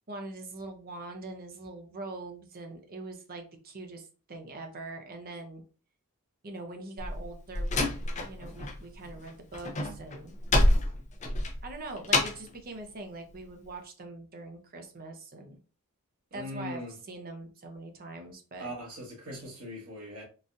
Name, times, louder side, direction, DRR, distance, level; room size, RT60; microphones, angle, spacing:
voice 1, 0.1-5.6 6.4-7.7 8.2-10.3 11.6-15.6 16.3-18.7, right 2 dB, 40° right, 0.7 m, -43 dB
Slam, 7.0-8.8 9.1-12.5, left 2 dB, 30° left, 0.5 m, -27 dB
voice 2, 16.3-16.9 18.6-20.2, equal, 75° right, 1.6 m, -40 dB
3.9 x 2.4 x 2.6 m
head